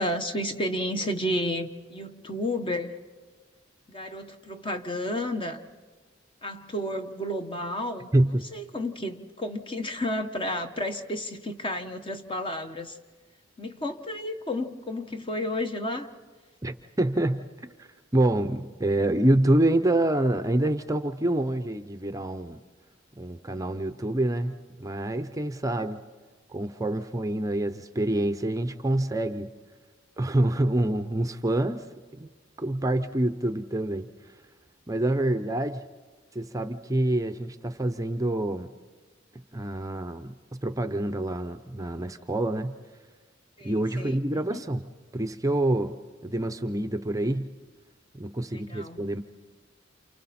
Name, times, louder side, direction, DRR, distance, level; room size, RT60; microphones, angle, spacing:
voice 1, 0.0-3.0 3.9-5.6 6.4-8.1 8.5-13.0 13.6-16.1 43.6-44.6 48.5-49.0, left 1 dB, 25° left, 7 dB, 1.2 m, -32 dB
voice 2, 8.1-8.4 16.6-22.6 23.2-26.0 26.5-29.5 30.2-31.8 32.2-32.3 32.6-34.4 34.9-35.8 36.3-38.7 39.5-40.3 40.6-42.8 43.6-46.0 46.2-47.5 48.1-49.2, right 1 dB, 15° right, 8 dB, 0.7 m, -27 dB
29.0 x 29.0 x 4.3 m, 1.5 s
head